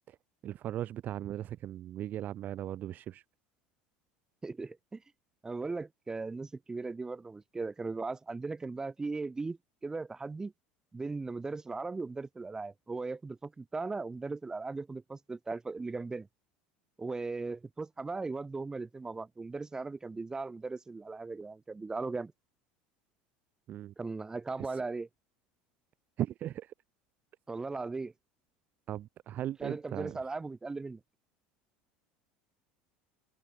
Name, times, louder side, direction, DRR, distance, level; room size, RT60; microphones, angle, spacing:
voice 1, 0.4-3.2 23.7-23.9 24.6-24.8 26.2-26.7 28.9-30.2, right 12 dB, 45° right, 2.3 m, -38 dB
voice 2, 4.4-5.0 5.4-10.5 10.9-16.3 17.0-22.3 24.0-25.1 27.5-28.1 29.6-31.0, right 3 dB, 15° right, 6.8 m, -38 dB
supercardioid pair, 105°, 4 cm